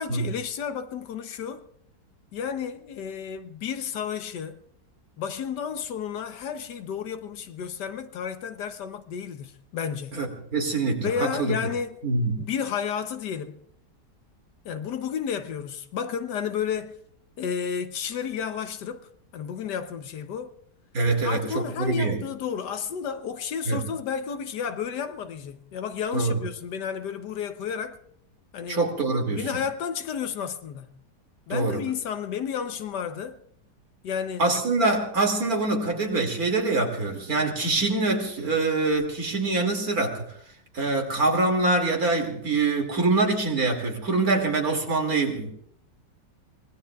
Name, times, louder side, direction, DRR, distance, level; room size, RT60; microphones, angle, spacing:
voice 1, 0.0-1.7 2.3-4.6 5.2-10.2 11.0-12.0 12.4-13.6 14.6-17.0 17.4-20.5 21.2-28.0 28.5-28.8 29.3-31.0 31.5-33.4 34.0-34.4, left 7 dB, 75° left, 1.4 m, -32 dB
voice 2, 10.1-11.6 12.0-12.5 20.9-22.2 23.7-23.8 26.1-26.4 28.7-29.4 31.5-31.8 34.4-40.3 40.7-45.5, right 3 dB, 55° right, 2.9 m, -24 dB
24.5 x 20.0 x 2.3 m
omnidirectional pair, 1.9 m